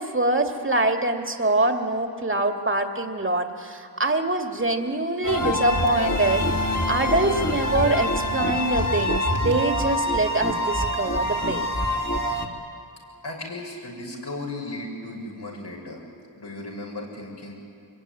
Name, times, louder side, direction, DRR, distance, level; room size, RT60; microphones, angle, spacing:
voice 1, 0.0-11.7, right 2 dB, 30° right, 4 dB, 2.4 m, -24 dB
sound 1, 5.2-12.5, left 1 dB, 40° left, 3.1 m, -25 dB
voice 2, 13.2-16.0 16.4-17.5, left 2 dB, 80° left, -2 dB, 7.3 m, -35 dB
25.5 x 22.5 x 9.9 m, 2.5 s
cardioid pair, 50°, 40 cm